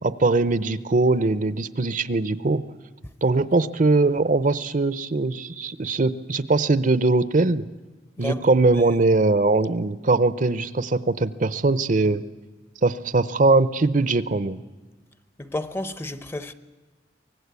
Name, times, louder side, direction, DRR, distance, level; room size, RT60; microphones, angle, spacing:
voice 1, 0.0-2.6 3.2-7.7 8.2-12.2 12.8-14.6, right 3 dB, 45° right, 0.7 m, -21 dB
voice 2, 15.4-16.5, left 1 dB, 15° left, 0.7 m, -31 dB
24.0 x 19.0 x 8.2 m
head